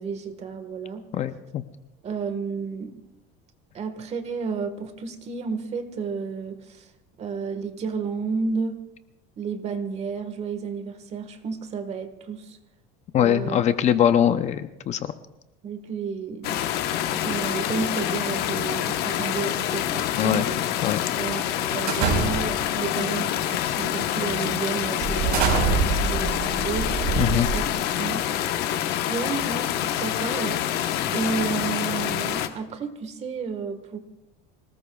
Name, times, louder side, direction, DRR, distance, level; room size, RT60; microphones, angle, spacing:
voice 1, 0.0-1.0 2.0-3.0 3.7-6.9 7.2-8.8 9.4-12.6 13.1-13.6 15.6-16.7 17.0-20.5 21.2-27.1 27.5-27.6 28.0-28.3 29.1-30.6 31.1-34.0, right 5 dB, 35° right, 9 dB, 1.5 m, -32 dB
voice 2, 1.1-1.6 13.1-15.1 20.2-20.5 20.8-21.0 27.2-27.5, left 10 dB, 35° left, 11 dB, 0.6 m, -22 dB
sound 1, 16.4-32.5, left 11 dB, 55° left, 1.1 m, -26 dB
sound 2, 21.9-22.7 23.5-23.8 24.2-24.3 25.0-27.9, right 5 dB, 55° right, 4.6 m, -25 dB
26.5 x 19.0 x 2.3 m, 0.91 s
cardioid pair, 150°, 20 cm